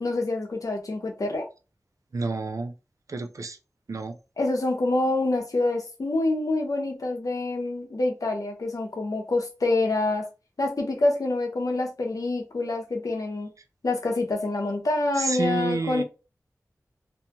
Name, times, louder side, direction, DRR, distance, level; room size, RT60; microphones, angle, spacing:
voice 1, 0.0-1.5 4.4-10.3 10.6-13.5 13.8-16.0, left 2 dB, 70° left, 0.8 m, -26 dB
voice 2, 2.1-2.7 3.1-3.6 3.9-4.2 15.2-16.0, right 3 dB, 60° right, 0.4 m, -29 dB
2.7 x 2.2 x 2.8 m
cardioid pair, 40°, 6 cm